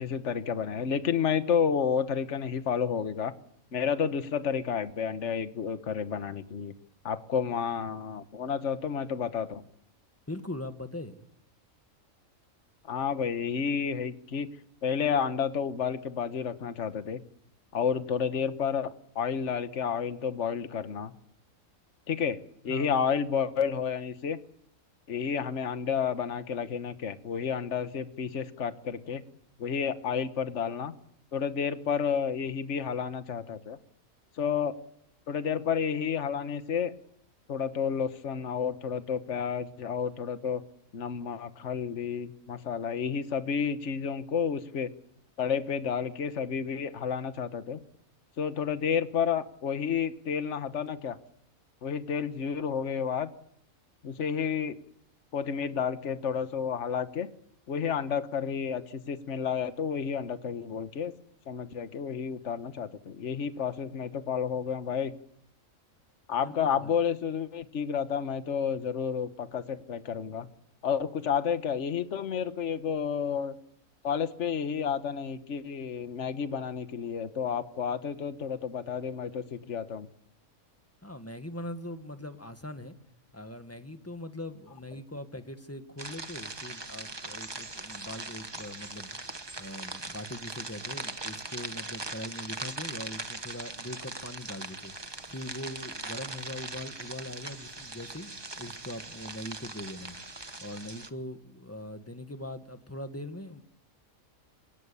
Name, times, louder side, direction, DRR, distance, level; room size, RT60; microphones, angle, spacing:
voice 1, 0.0-3.3 3.7-6.7 7.0-9.6 12.9-14.5 14.8-17.2 17.7-21.1 22.1-22.4 22.6-24.4 25.1-29.2 29.6-30.9 31.3-33.8 34.4-34.7 35.3-36.9 37.5-40.6 40.9-44.9 45.4-47.8 48.4-51.2 51.8-53.3 54.0-54.8 55.3-57.3 57.7-61.1 61.5-65.1 66.3-70.5 70.8-73.5 74.0-80.1, left 7 dB, 60° left, 11 dB, 1.5 m, -30 dB
voice 2, 10.3-11.2 22.7-22.9 66.4-67.0 81.0-82.9 83.3-89.2 89.6-100.2 100.6-103.6, left 1 dB, 10° left, 8 dB, 1.6 m, -41 dB
sound 1, 86.0-101.1, right 2 dB, 20° right, 1.1 m, -40 dB
29.5 x 18.0 x 7.0 m, 0.71 s
omnidirectional pair, 1.4 m